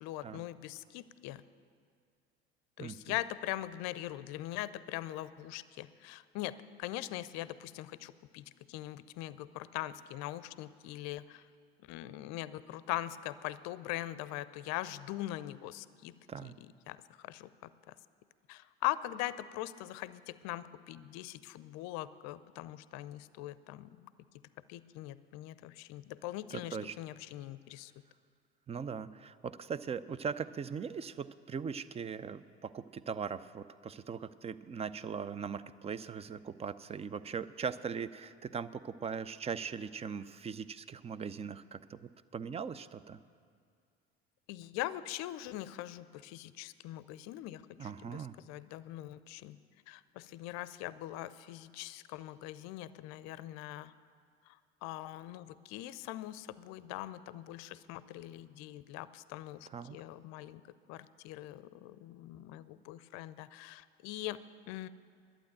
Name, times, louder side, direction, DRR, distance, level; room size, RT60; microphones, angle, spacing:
voice 1, 0.0-1.4 2.8-11.5 11.8-16.2 16.4-17.9 18.5-24.1 24.7-27.9 44.5-49.6 49.9-53.9 54.5-60.6 60.9-64.9, left 15 dB, 55° left, 16 dB, 0.6 m, -42 dB
voice 2, 26.5-27.0 28.7-43.2 47.8-48.4 59.7-60.0, right 6 dB, 20° right, 16 dB, 0.4 m, -40 dB
11.5 x 8.8 x 8.9 m, 2.2 s
hypercardioid pair, 70°, 32 cm